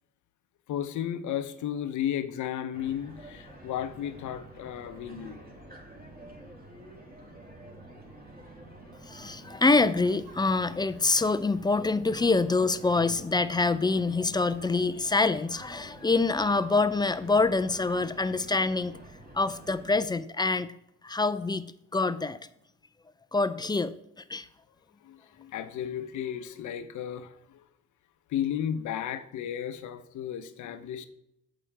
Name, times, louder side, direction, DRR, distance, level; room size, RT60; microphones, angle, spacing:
voice 1, 0.7-5.4 25.0-27.6 28.3-31.1, left 10 dB, 75° left, 0.8 m, -34 dB
sound 1, 2.7-20.0, right 1 dB, 30° right, 3.0 m, -49 dB
voice 2, 9.0-19.0 19.3-20.7 21.0-22.4 23.3-23.9 24.3-24.5, left 3 dB, 15° left, 0.4 m, -26 dB
8.6 x 7.8 x 3.4 m
cardioid pair, 90°, 30 cm